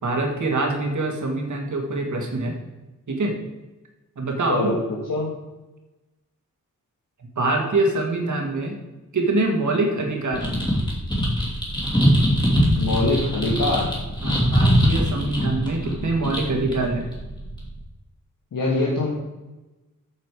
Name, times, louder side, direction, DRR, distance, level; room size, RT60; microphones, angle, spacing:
voice 1, 0.0-2.5 3.1-3.4 4.2-4.7 7.4-8.8 9.1-10.6 14.2-17.1, right 2 dB, 60° right, 2 dB, 1.9 m, -24 dB
sound 1, 10.3-17.8, equal, 15° left, 2.9 m, -22 dB
voice 2, 12.7-13.9 18.5-19.1, left 2 dB, 80° left, -3 dB, 1.7 m, -23 dB
8.5 x 6.7 x 4.8 m, 1.1 s
wide cardioid pair, 150°, 33 cm